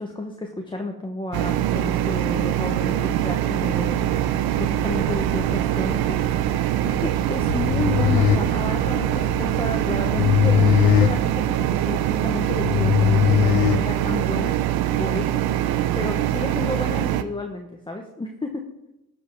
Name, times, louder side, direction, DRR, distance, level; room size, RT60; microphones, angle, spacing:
voice 1, 0.0-6.2 6.5-14.6 15.0-15.4 15.9-18.6, left 2 dB, 15° left, 2 dB, 1.0 m, -31 dB
sound 1, 1.3-17.2, right 12 dB, 80° right, 0.6 m, -23 dB
Bus, 3.6-10.3, equal, 45° right, 3.2 m, -39 dB
sound 2, 7.4-14.4, left 10 dB, 75° left, 0.6 m, -21 dB
11.5 x 5.5 x 4.6 m, 0.92 s
cardioid pair, 80°, 36 cm